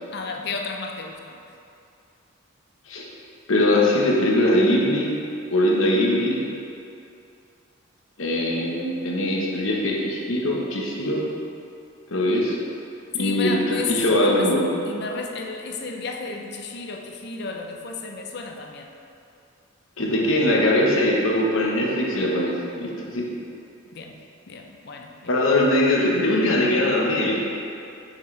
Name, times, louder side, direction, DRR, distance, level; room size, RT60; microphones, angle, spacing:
voice 1, 0.1-1.4 13.2-14.5 14.9-18.9 23.9-24.2 24.5-25.3, left 4 dB, 50° left, 2 dB, 0.6 m, -32 dB
voice 2, 3.5-5.1 5.5-6.4 8.2-11.2 12.1-12.6 13.1-14.6 20.0-22.5 22.8-23.3 25.3-27.4, left 1 dB, 80° left, -3 dB, 1.1 m, -21 dB
6.5 x 6.1 x 3.3 m, 2.6 s
head